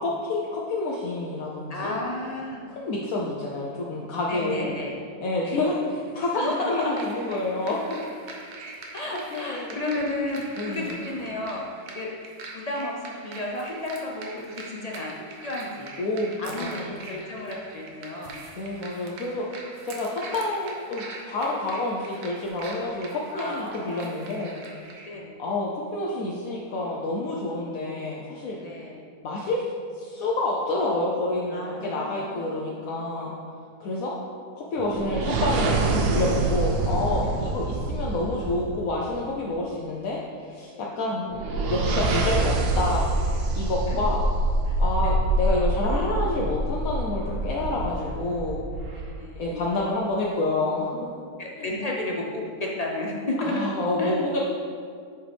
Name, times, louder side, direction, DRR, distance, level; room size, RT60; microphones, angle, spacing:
voice 1, 0.0-1.9 2.8-4.7 5.2-7.8 9.3-9.8 10.6-10.9 16.0-17.0 18.5-19.5 19.8-24.6 25.4-28.6 29.2-29.7 30.0-33.3 33.8-34.1 34.6-41.3 41.7-43.1 43.5-44.2 44.8-48.6 49.4-51.1 53.4-54.5, left 2 dB, 70° left, -3 dB, 1.1 m, -28 dB
voice 2, 1.7-2.7 4.3-5.0 5.4-5.6 6.3-7.0 8.9-11.6 11.9-12.1 12.5-15.1 15.4-15.9 16.4-18.4 23.3-24.2 25.1-25.4 28.6-29.1 31.5-32.9 34.9-35.1 37.2-37.4 40.7-40.9 43.9-44.0 44.7-45.2 49.1-49.6 51.4-53.6 54.0-54.2, left 2 dB, 50° left, -2 dB, 0.4 m, -32 dB
sound 1, 6.5-25.1, right 3 dB, 85° right, 1.3 m, -43 dB
sound 2, 34.8-39.2 41.3-49.3, right 2 dB, 65° right, 0.6 m, -26 dB
8.0 x 4.5 x 3.3 m, 2.1 s
omnidirectional pair, 1.6 m